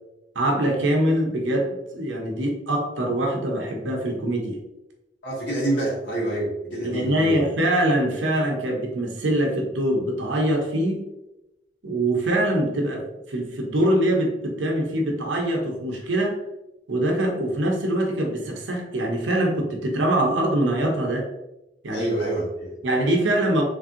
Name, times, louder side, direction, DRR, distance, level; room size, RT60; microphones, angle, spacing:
voice 1, 0.3-4.6 6.8-11.0 11.8-16.4 16.9-21.3 21.8-22.1 22.8-23.6, right 1 dB, 90° right, 1 dB, 0.7 m, -23 dB
voice 2, 5.2-7.4 21.9-22.7, right 1 dB, 70° left, -6 dB, 1.4 m, -27 dB
3.2 x 2.7 x 2.5 m, 0.94 s
head